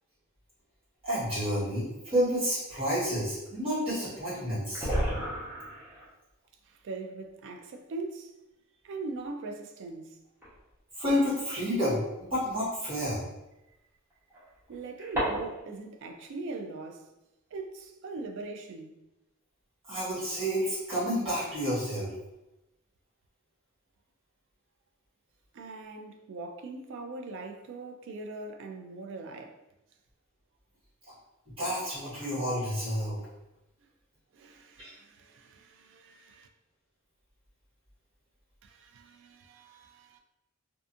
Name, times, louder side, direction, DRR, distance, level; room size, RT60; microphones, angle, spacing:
voice 1, 1.0-4.9 11.0-13.2 19.9-22.1 31.6-33.2 34.8-34.9, equal, 25° right, 1.3 m, -30 dB
sound 1, 4.0-4.1 4.3-4.4 4.7-6.0 7.4-7.5 8.4-8.5 10.4-10.7 11.9-12.0 14.1-15.7, equal, 10° right, 0.9 m, -32 dB
voice 2, 6.7-8.3 8.8-10.2 14.7-17.1 17.5-18.9 25.5-29.5 34.3-36.5 38.6-40.2, right 3 dB, 60° right, 0.3 m, -41 dB
2.5 x 2.4 x 2.5 m
head